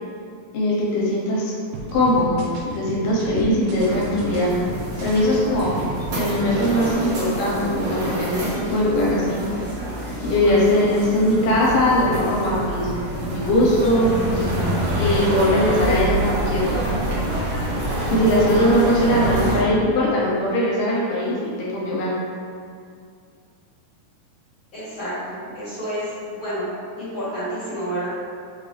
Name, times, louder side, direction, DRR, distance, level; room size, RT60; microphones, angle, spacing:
voice 1, 0.5-1.5 1.9-2.4 2.7-4.5 5.0-5.8 6.2-9.4 10.2-12.9 13.2-14.5 15.0-16.7 18.1-22.1, left 1 dB, 80° left, -6 dB, 2.5 m, -20 dB
sound 1, 1.7-6.2 6.5-6.9, right 3 dB, 75° right, 1.9 m, -34 dB
sound 2, 3.8-19.6, right 1 dB, 60° right, 1.7 m, -26 dB
voice 2, 24.7-26.7 27.0-28.1, equal, 55° left, -13 dB, 1.6 m, -29 dB
6.0 x 2.6 x 3.3 m, 2.3 s
omnidirectional pair, 3.9 m